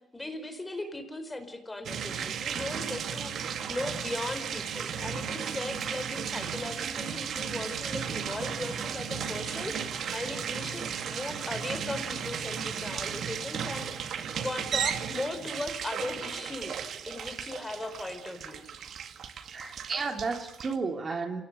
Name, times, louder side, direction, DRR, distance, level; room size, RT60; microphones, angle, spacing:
voice 1, 0.1-13.9 14.4-18.7, left 2 dB, 15° left, 8 dB, 4.7 m, -38 dB
sound 1, 1.9-20.8, right 7 dB, 65° right, 2.0 m, -35 dB
voice 2, 19.5-21.4, right 4 dB, 40° right, 5 dB, 2.8 m, -32 dB
27.5 x 18.5 x 6.7 m, 0.93 s
cardioid pair, 90°, 0 cm